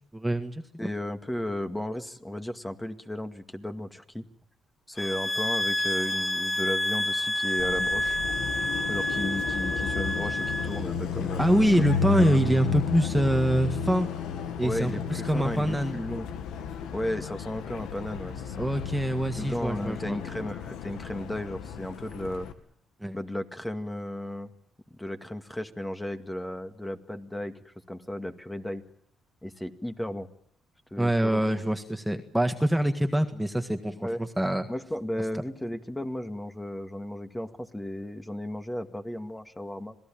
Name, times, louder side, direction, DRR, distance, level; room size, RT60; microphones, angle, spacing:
voice 1, 0.1-0.9 11.4-14.1 14.6-16.0 18.6-20.2 23.0-23.2 31.0-34.7, right 1 dB, 5° right, 5 dB, 1.7 m, -25 dB
voice 2, 0.8-4.2 4.9-8.2 8.9-11.9 12.2-12.4 14.6-16.3 16.9-18.6 19.2-22.5 23.1-24.5 24.9-28.8 29.4-30.3 30.9-31.6 34.0-34.2 34.7-40.0, left 1 dB, 10° left, 7 dB, 2.1 m, -35 dB
sound 1, 5.0-10.8, left 1 dB, 25° left, 3.0 m, -29 dB
Car passing by, 7.6-22.5, left 6 dB, 90° left, 2.3 m, -33 dB
26.5 x 18.0 x 9.0 m, 0.66 s
cardioid pair, 90°, 0 cm